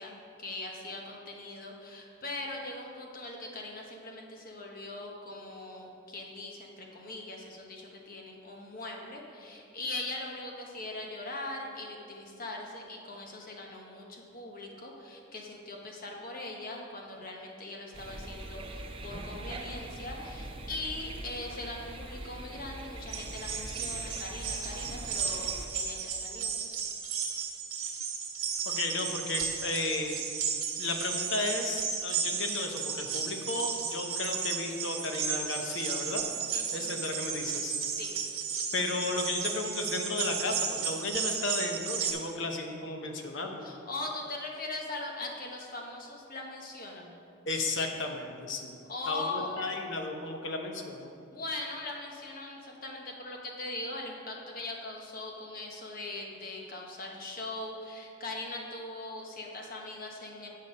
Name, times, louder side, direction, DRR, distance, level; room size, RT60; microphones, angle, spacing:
voice 1, 0.0-26.5 36.5-36.9 37.9-38.3 43.6-47.2 48.9-49.7 51.3-60.5, left 2 dB, 45° left, 0 dB, 1.1 m, -40 dB
sound 1, 17.9-25.7, right 2 dB, 25° right, 0.5 m, -42 dB
sound 2, 23.1-42.1, right 6 dB, 85° right, 1.4 m, -34 dB
voice 2, 28.7-30.2 30.8-36.2 36.7-37.8 38.7-43.7 47.5-48.7 49.1-51.1, left 2 dB, 60° left, 3 dB, 0.9 m, -34 dB
8.7 x 5.6 x 5.3 m, 2.6 s
head